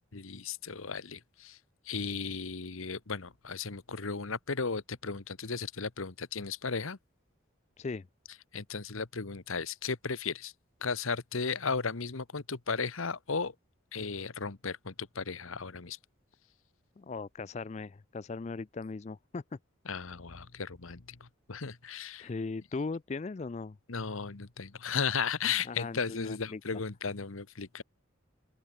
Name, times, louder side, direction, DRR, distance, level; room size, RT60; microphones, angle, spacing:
voice 1, 0.1-1.6 1.8-7.0 8.5-10.5 10.8-13.5 13.9-16.0 19.8-22.3 23.9-27.8, left 5 dB, 75° left, 1.2 m, -35 dB
voice 2, 17.0-19.4 22.2-23.8 25.7-26.6, left 4 dB, 30° left, 0.4 m, -38 dB
open air
head